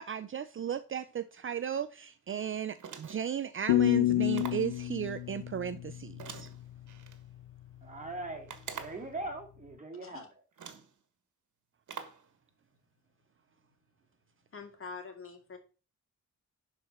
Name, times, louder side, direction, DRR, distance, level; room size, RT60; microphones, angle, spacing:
voice 1, 0.0-6.5, right 8 dB, 45° right, 0.5 m, -35 dB
sound 1, 2.8-3.3 4.3-4.7 6.2-7.2 8.5-9.1 10.0-10.1 10.6-10.9 11.9-12.3, right 7 dB, 75° right, 1.6 m, -45 dB
sound 2, 3.7-6.6, left 15 dB, 90° left, 0.5 m, -29 dB
voice 2, 7.8-10.4, right 2 dB, 25° right, 2.8 m, -41 dB
voice 3, 14.5-15.6, left 4 dB, 45° left, 2.4 m, -45 dB
11.5 x 4.8 x 5.6 m
wide cardioid pair, 160°, 30 cm